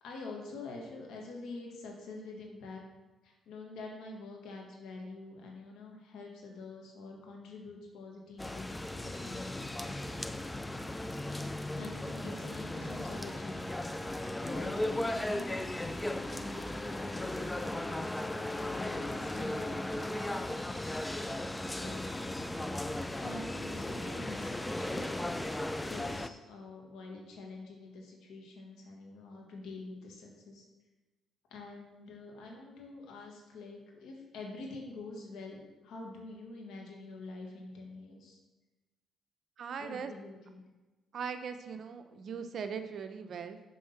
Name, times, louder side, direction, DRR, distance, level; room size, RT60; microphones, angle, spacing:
voice 1, 0.0-2.8 3.2-10.4 11.8-13.8 14.4-20.6 21.7-22.1 23.2-25.6 25.9-30.6 31.5-38.4 39.8-40.6, left 3 dB, 85° left, 0 dB, 1.7 m, -47 dB
sound 1, 8.4-26.3, left 1 dB, 10° left, 0.4 m, -36 dB
voice 2, 39.6-40.1 41.1-43.6, right 6 dB, 60° right, 8 dB, 0.7 m, -40 dB
6.2 x 4.7 x 5.8 m, 1.2 s
cardioid pair, 90°, 0 cm